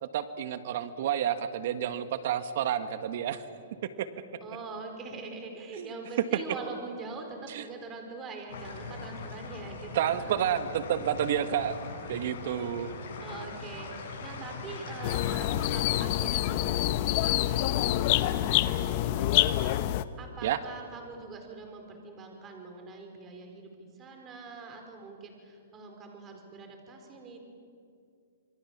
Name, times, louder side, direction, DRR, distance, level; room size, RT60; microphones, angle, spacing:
voice 1, 0.0-3.4 4.0-4.1 5.8-5.9 7.5-7.6 9.9-11.7 12.1-12.9 20.4-20.6, right 10 dB, 60° right, 10 dB, 1.6 m, -30 dB
voice 2, 4.4-10.3 13.2-27.4, right 3 dB, 20° right, 4 dB, 4.6 m, -44 dB
sound 1, 8.5-16.1, left 4 dB, 60° left, 7.9 m, -41 dB
sound 2, 15.0-20.0, left 14 dB, 45° left, 0.9 m, -26 dB
26.5 x 24.0 x 7.4 m, 2.4 s
hypercardioid pair, 145°, 0 cm